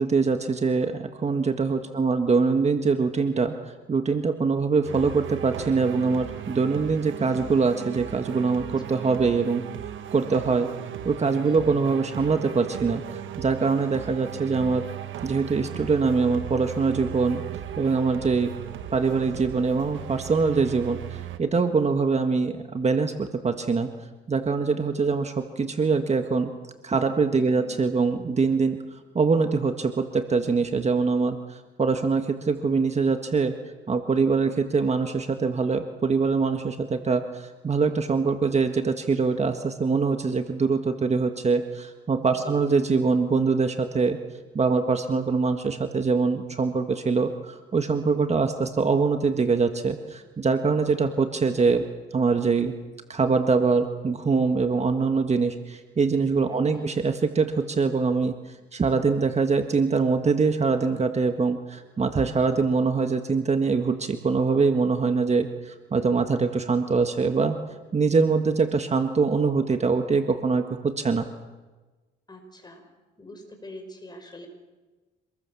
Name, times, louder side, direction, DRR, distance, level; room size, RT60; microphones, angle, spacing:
voice 1, 0.0-3.5 3.9-9.6 10.1-10.7 11.0-14.8 15.2-17.4 17.8-18.5 18.9-23.9 24.3-26.5 26.8-28.8 29.1-33.5 33.9-44.2 44.5-51.8 52.1-52.7 53.1-58.3 58.7-67.6 67.9-71.2, right 4 dB, 35° right, 7 dB, 1.6 m, -23 dB
voice 2, 1.8-2.1 11.4-11.7 27.3-27.7 34.2-34.5 42.3-42.6 56.5-56.9 72.3-72.8 73.2-74.5, left 1 dB, 20° left, 5 dB, 5.7 m, -45 dB
sound 1, 4.8-21.4, right 10 dB, 75° right, 1.5 m, -37 dB
26.0 x 21.0 x 7.1 m, 1.2 s
cardioid pair, 90°, 20 cm